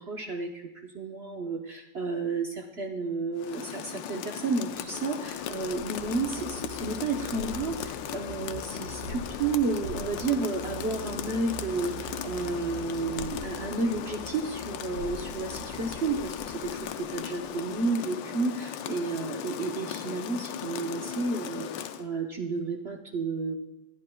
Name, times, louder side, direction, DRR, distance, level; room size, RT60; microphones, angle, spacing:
voice 1, 0.0-23.5, right 3 dB, 50° right, 2 dB, 0.8 m, -32 dB
Rain, 3.4-22.1, left 10 dB, 75° left, 1.3 m, -37 dB
sound 1, 4.6-18.0, right 2 dB, 80° right, 5.8 m, -44 dB
22.0 x 9.8 x 2.3 m, 0.96 s
omnidirectional pair, 2.1 m